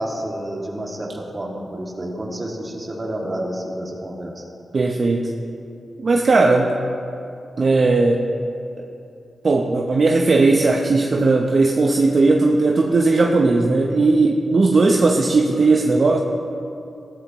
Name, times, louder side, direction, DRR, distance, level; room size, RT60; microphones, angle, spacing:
voice 1, 0.0-4.4, right 1 dB, 35° right, -1 dB, 2.4 m, -29 dB
voice 2, 4.7-5.3 6.0-6.7 7.6-8.2 9.4-16.2, right 3 dB, 55° right, 2 dB, 0.8 m, -17 dB
15.5 x 12.5 x 3.1 m, 2.7 s
cardioid pair, 55°, 0 cm